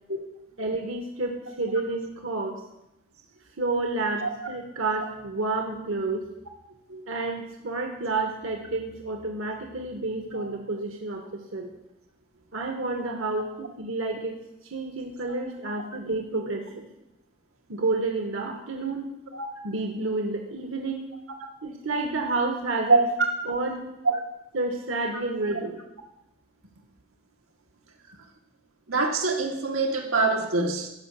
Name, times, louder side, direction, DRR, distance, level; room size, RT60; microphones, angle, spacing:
voice 1, 0.6-2.6 3.6-6.3 7.1-11.7 12.5-16.9 17.7-19.1 19.6-21.0 21.6-23.0 23.5-23.9 24.5-25.8, right 3 dB, 65° right, 3 dB, 1.3 m, -30 dB
voice 2, 28.9-30.9, right 3 dB, 90° right, 2 dB, 1.6 m, -24 dB
14.5 x 5.7 x 6.8 m, 0.90 s
head